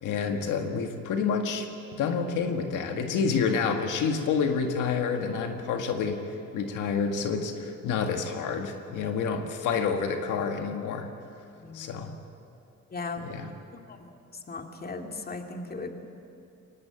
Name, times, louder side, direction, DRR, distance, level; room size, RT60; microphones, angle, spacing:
voice 1, 0.0-6.2 6.5-11.1 11.7-12.1 13.2-13.5, left 5 dB, 85° left, 5 dB, 1.8 m, -28 dB
voice 2, 11.6-11.9 12.9-13.3 13.9-14.0 14.5-15.9, left 3 dB, 30° left, 4 dB, 2.2 m, -37 dB
23.0 x 18.5 x 8.9 m, 2.6 s
cardioid pair, 90°, 30 cm